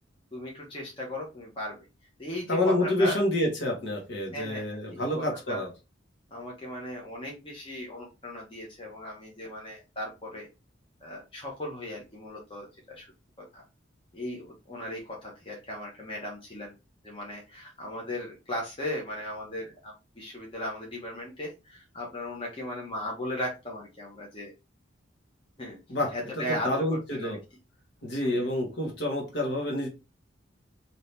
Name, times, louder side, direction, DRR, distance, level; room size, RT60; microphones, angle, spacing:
voice 1, 0.3-1.9 2.2-3.2 4.3-5.1 5.5-5.7 6.3-10.5 11.0-13.1 13.5-13.6 14.1-16.7 17.0-24.5 25.6-25.8 26.1-26.8 27.1-27.4 28.2-28.5, left 1 dB, 25° left, -2 dB, 0.8 m, -37 dB
voice 2, 2.5-5.7 25.9-26.1 26.4-27.4 28.0-29.9, left 1 dB, 60° left, 0 dB, 1.2 m, -28 dB
2.8 x 2.8 x 3.3 m, 0.27 s
head